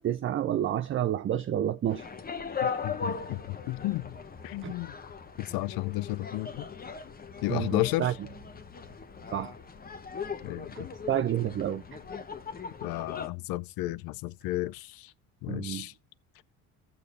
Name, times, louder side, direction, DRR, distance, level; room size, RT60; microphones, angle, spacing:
voice 1, 0.0-2.0 4.6-4.8 7.5-8.1 9.3-9.5 11.1-11.8 15.5-15.9, right 11 dB, 35° right, 0.5 m, -29 dB
sound 1, 1.9-13.3, left 5 dB, 25° left, 0.9 m, -39 dB
voice 2, 2.6-4.2 4.4-4.9 5.4-6.7 7.4-8.1 10.4-10.9 12.8-15.1 15.4-15.9, left 17 dB, 75° left, 0.5 m, -33 dB
15.5 x 6.8 x 2.4 m
cardioid pair, 95°, 37 cm